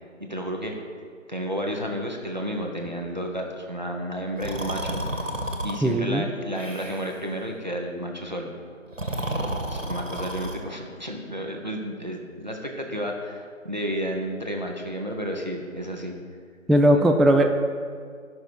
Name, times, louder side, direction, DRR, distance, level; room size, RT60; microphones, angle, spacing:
voice 1, 0.2-0.7 1.3-5.3 5.6-8.5 9.5-16.2 16.9-17.1, equal, 35° right, 1 dB, 1.0 m, -32 dB
Breathing, 4.4-5.8 6.6-7.2 8.9-10.6, right 1 dB, 70° right, 1.6 m, -31 dB
voice 2, 5.8-6.3 16.7-17.5, right 1 dB, ahead, 4 dB, 0.4 m, -18 dB
12.5 x 6.0 x 4.9 m, 2.2 s
figure-of-eight pair, 170°, 40 cm